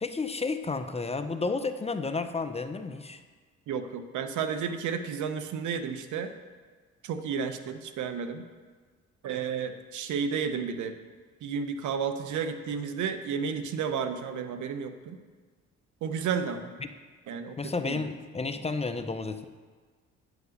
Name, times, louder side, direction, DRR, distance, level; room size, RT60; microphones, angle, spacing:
voice 1, 0.0-3.2 17.6-19.5, left 4 dB, 20° left, 9 dB, 0.5 m, -31 dB
voice 2, 3.7-6.3 7.0-8.4 9.2-10.9 11.4-15.2 16.0-16.7 17.3-18.0, right 6 dB, 75° right, 9 dB, 0.8 m, -32 dB
9.3 x 5.1 x 6.4 m, 1.5 s
cardioid pair, 90°, 30 cm